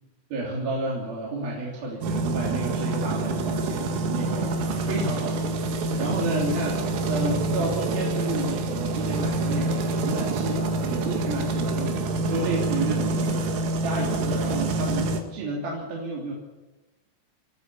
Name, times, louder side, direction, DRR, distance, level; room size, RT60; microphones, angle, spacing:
voice 1, 0.3-16.3, right 2 dB, 50° right, -3 dB, 4.7 m, -31 dB
sound 1, 2.0-15.2, right 2 dB, 75° right, 4.4 m, -26 dB
27.0 x 14.0 x 7.1 m, 1.1 s
omnidirectional pair, 5.9 m